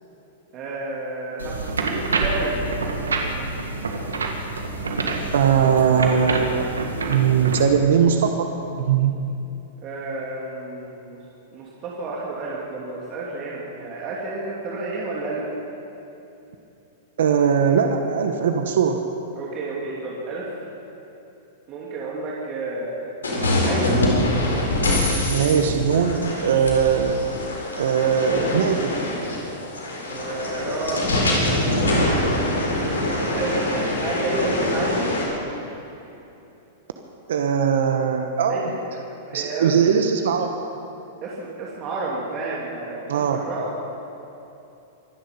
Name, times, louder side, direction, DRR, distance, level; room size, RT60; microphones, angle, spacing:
voice 1, 0.5-2.7 9.8-11.2 11.5-15.4 19.3-20.5 21.7-23.1 23.6-24.0 30.0-31.9 32.8-35.1 38.5-39.0 39.3-39.8 41.2-43.7, right 2 dB, 40° right, -5 dB, 2.9 m, -31 dB
sound 1, 1.4-7.6, right 3 dB, 90° right, 1.8 m, -27 dB
voice 2, 5.3-6.7 7.0-8.5 8.8-9.1 17.2-19.0 25.3-27.2 27.8-29.0 37.3-38.8 39.3-40.5 43.1-43.4, right 7 dB, 70° right, 5 dB, 1.0 m, -20 dB
sound 2, 23.2-35.2, left 1 dB, 85° left, 4.2 m, -24 dB
25.5 x 10.5 x 5.4 m, 2.9 s
hypercardioid pair, 105°, 0 cm